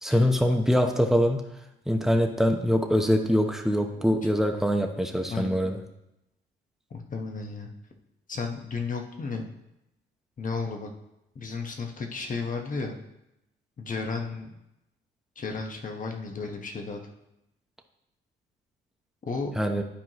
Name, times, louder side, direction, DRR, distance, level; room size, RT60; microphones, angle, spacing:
voice 1, 0.0-1.4 1.9-5.8 19.6-19.8, equal, ahead, 4 dB, 0.9 m, -23 dB
voice 2, 5.3-5.7 6.9-7.7 8.3-9.4 10.4-10.9 11.3-12.9 13.8-14.5 15.4-17.0 19.2-19.5, left 4 dB, 40° left, 3 dB, 1.3 m, -33 dB
11.5 x 4.6 x 3.0 m, 0.87 s
cardioid pair, 90°, 20 cm